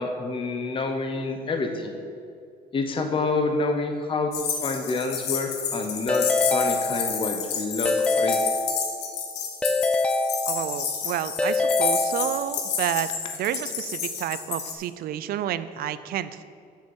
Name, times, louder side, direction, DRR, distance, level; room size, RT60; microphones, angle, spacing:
voice 1, 0.0-2.0 2.7-4.3 4.6-8.4, left 3 dB, 30° left, 5 dB, 0.8 m, -28 dB
sound 1, 4.3-14.7, left 7 dB, 85° left, 1.3 m, -30 dB
Keyboard (musical) / Ringtone, 6.1-7.4 7.8-9.2 9.6-11.0 11.4-12.7, left 2 dB, 5° left, 0.4 m, -25 dB
voice 2, 10.5-13.1 13.4-16.4, right 11 dB, 65° right, 14 dB, 0.5 m, -30 dB
6.5 x 6.4 x 7.1 m, 2.4 s
cardioid pair, 110°, 17 cm